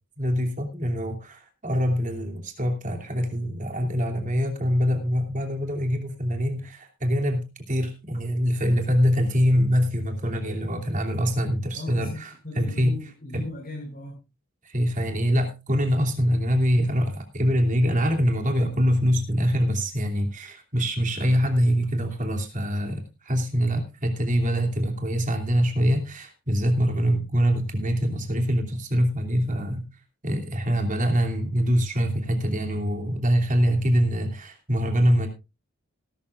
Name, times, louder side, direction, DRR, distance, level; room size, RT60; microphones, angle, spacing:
voice 1, 0.2-13.0 13.3-13.4 14.6-29.8 30.2-35.3, equal, 35° right, 3 dB, 2.9 m, -24 dB
voice 2, 11.7-12.2 12.4-14.2, left 2 dB, 40° left, -2 dB, 4.8 m, -37 dB
18.5 x 12.0 x 2.5 m, 0.27 s
head